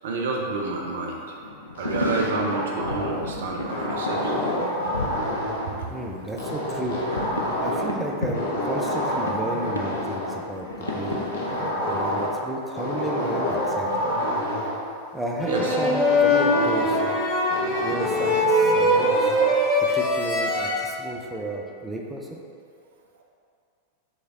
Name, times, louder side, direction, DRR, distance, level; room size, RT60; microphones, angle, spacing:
voice 1, 0.0-1.4 1.8-4.4 5.8-6.0 15.4-15.8 18.5-18.8, right 3 dB, 60° right, 0 dB, 0.5 m, -29 dB
sound 1, 1.4-11.6, left 1 dB, 80° left, 0.4 m, -34 dB
sound 2, 1.8-3.3 3.7-5.7 6.4-8.0 8.3-10.3 10.8-12.4 12.8-14.8 15.6-17.1 17.5-19.5, equal, 60° left, 0.9 m, -28 dB
voice 2, 5.9-7.0 7.6-11.2 11.8-13.9 15.1-17.2 17.8-19.3 19.9-22.4, right 1 dB, 5° right, -2 dB, 0.5 m, -33 dB
Violin Scale, 15.4-20.7, left 1 dB, 25° left, 0.9 m, -21 dB
6.2 x 3.3 x 2.3 m, 2.4 s
figure-of-eight pair, 90°, 0 cm